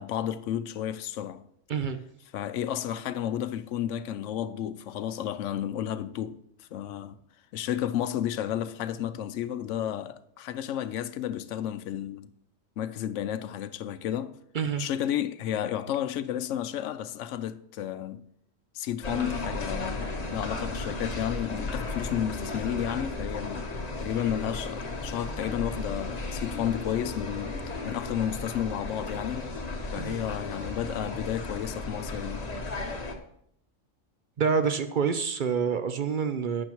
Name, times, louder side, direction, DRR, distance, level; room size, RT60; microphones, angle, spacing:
voice 1, 0.0-1.4 2.3-7.2 7.5-12.3 12.8-14.3 14.8-18.2 18.7-23.7 24.0-29.5 29.9-32.5, left 10 dB, 70° left, 0.9 m, -32 dB
sound 1, 19.0-33.2, left 2 dB, 35° left, 1.0 m, -35 dB
voice 2, 34.4-36.6, right 6 dB, 55° right, 0.6 m, -27 dB
11.5 x 8.6 x 3.0 m
omnidirectional pair, 1.3 m